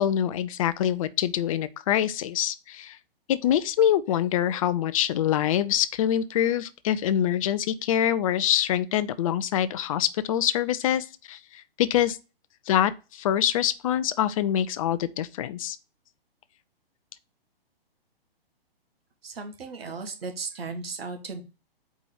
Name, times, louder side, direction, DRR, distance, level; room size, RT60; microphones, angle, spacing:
voice 1, 0.0-3.0 3.3-12.2 12.7-15.8, left 10 dB, 35° left, 0.5 m, -25 dB
voice 2, 19.2-21.4, right 4 dB, 75° right, 1.9 m, -36 dB
4.7 x 4.2 x 5.5 m
hypercardioid pair, 135°, 30 cm